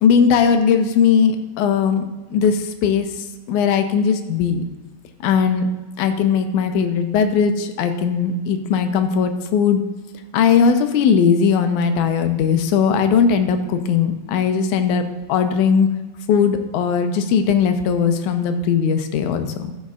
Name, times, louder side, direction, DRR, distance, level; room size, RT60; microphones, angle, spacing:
voice 1, 0.0-2.0 2.3-3.1 3.5-4.6 5.2-5.7 6.0-9.8 10.3-15.9 16.3-19.7, left 6 dB, 85° left, 7 dB, 2.2 m, -18 dB
14.5 x 6.4 x 2.4 m, 1.2 s
omnidirectional pair, 3.5 m